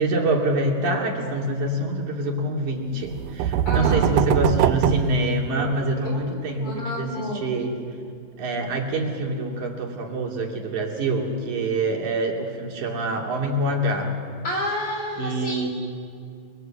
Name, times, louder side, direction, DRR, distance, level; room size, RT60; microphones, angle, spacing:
voice 1, 0.0-7.7 8.4-14.2 15.2-15.7, right 1 dB, 65° right, 0 dB, 4.2 m, -25 dB
sound 1, 3.0-6.0, right 10 dB, 85° right, 2.4 m, -22 dB
voice 2, 3.7-4.1 6.0-7.5 14.4-15.7, left 1 dB, 40° left, 1 dB, 3.8 m, -30 dB
30.0 x 22.0 x 7.7 m, 2.3 s
omnidirectional pair, 3.7 m